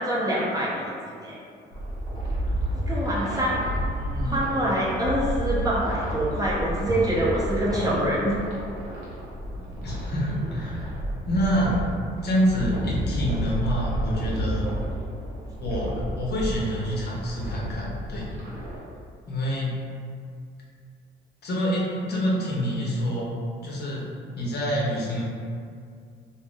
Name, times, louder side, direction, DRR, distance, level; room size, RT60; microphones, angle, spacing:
voice 1, 0.0-1.4 2.9-3.7 4.3-8.4 10.3-10.4 22.1-22.2, right 1 dB, 20° right, -6 dB, 0.7 m, -25 dB
sound 1, 1.7-18.8, equal, 90° right, 0.8 m, -31 dB
voice 2, 3.7-4.4 9.6-11.0 11.3-11.9 12.2-14.6 15.6-18.4 19.3-19.8 21.4-23.3 23.6-24.1 24.4-25.2, equal, 55° left, -4 dB, 0.7 m, -27 dB
2.5 x 2.1 x 3.5 m, 2.2 s
cardioid pair, 90°, 20 cm